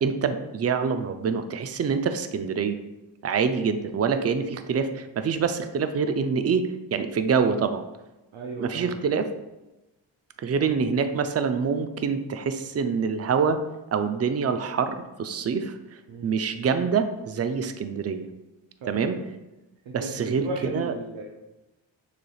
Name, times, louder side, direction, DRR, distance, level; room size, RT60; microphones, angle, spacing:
voice 1, 0.0-2.8 3.2-7.8 8.6-9.3 10.4-13.6 13.9-15.8 16.2-18.2 18.9-19.2 19.9-20.4 20.7-20.9, right 6 dB, 35° right, 9 dB, 0.4 m, -25 dB
voice 2, 8.3-9.0 16.1-16.3 18.8-19.2 19.8-21.2, right 2 dB, 75° right, 0 dB, 0.7 m, -36 dB
6.5 x 3.3 x 2.3 m, 1.0 s
cardioid pair, 55°, 46 cm